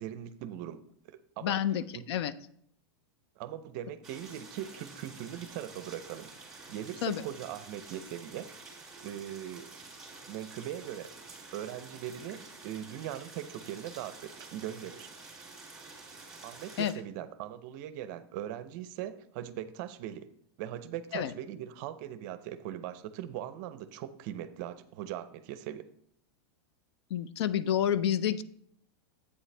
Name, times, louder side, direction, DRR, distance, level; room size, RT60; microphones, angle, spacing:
voice 1, 0.0-1.6 1.9-2.1 3.4-8.5 9.0-9.7 10.3-11.2 11.5-15.4 16.4-20.3 20.6-25.9, right 11 dB, 45° right, 13 dB, 0.5 m, -40 dB
voice 2, 1.4-2.3 7.0-7.2 16.8-16.9 21.1-21.3 27.1-28.4, left 10 dB, 75° left, 16 dB, 0.5 m, -29 dB
sound 1, 4.0-16.9, right 3 dB, 5° right, 2.2 m, -49 dB
8.4 x 7.4 x 3.3 m, 0.68 s
supercardioid pair, 155°, 14 cm